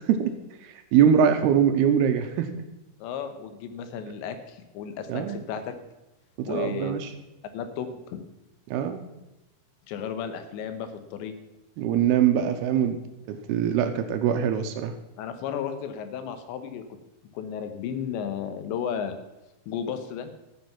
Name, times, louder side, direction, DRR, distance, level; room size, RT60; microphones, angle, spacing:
voice 1, 0.7-2.6 5.1-5.4 6.4-7.1 8.7-9.0 11.8-13.0 13.3-14.9, right 8 dB, 80° right, 7 dB, 2.5 m, -23 dB
voice 2, 3.0-5.8 6.5-7.0 7.5-8.2 9.9-11.4 15.2-16.8 17.3-19.2 19.7-20.3, left 7 dB, 85° left, 9 dB, 3.4 m, -33 dB
13.5 x 7.7 x 5.9 m, 1.0 s
omnidirectional pair, 5.0 m